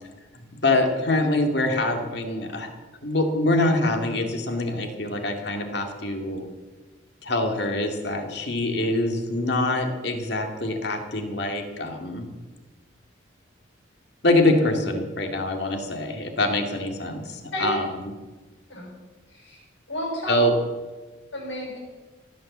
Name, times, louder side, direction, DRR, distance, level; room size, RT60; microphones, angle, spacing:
voice 1, 0.3-2.7 3.0-6.5 7.2-12.3 14.2-17.9 20.3-20.5, left 2 dB, 55° left, 3 dB, 2.3 m, -24 dB
voice 2, 19.3-19.6 19.9-20.4 21.3-21.8, left 1 dB, 75° left, -3 dB, 6.1 m, -31 dB
16.5 x 10.0 x 7.3 m, 1.3 s
head